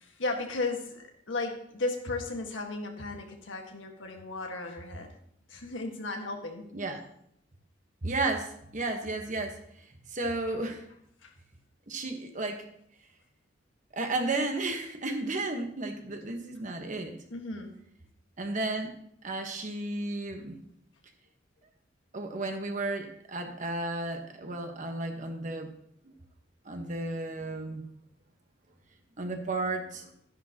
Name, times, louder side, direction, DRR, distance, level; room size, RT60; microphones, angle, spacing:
voice 1, 0.0-5.1 5.5-6.7 11.2-11.3 17.3-17.7, left 3 dB, 85° left, 3 dB, 1.6 m, -35 dB
voice 2, 8.0-9.6 10.1-10.9 11.9-12.7 13.9-17.1 18.4-18.9 19.2-20.6 22.1-25.7 26.0-26.1 26.6-27.9 29.2-30.1, right 2 dB, 40° right, 4 dB, 1.3 m, -33 dB
12.0 x 10.5 x 2.9 m, 0.70 s
head